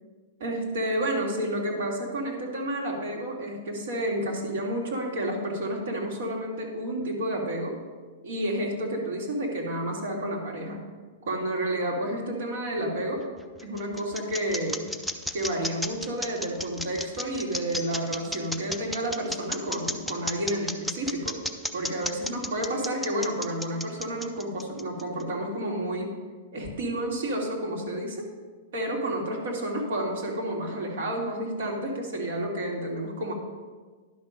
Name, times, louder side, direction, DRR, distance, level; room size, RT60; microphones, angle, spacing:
voice 1, 0.4-7.7 8.2-10.8 11.2-13.2 13.6-14.8 15.3-21.4 21.7-26.1 26.5-28.3 28.7-33.3, right 1 dB, 65° right, 0 dB, 2.3 m, -30 dB
sound 1, 13.2-25.2, left 1 dB, ahead, 0.4 m, -33 dB
11.0 x 5.9 x 5.1 m, 1.4 s
supercardioid pair, 175°, 0 cm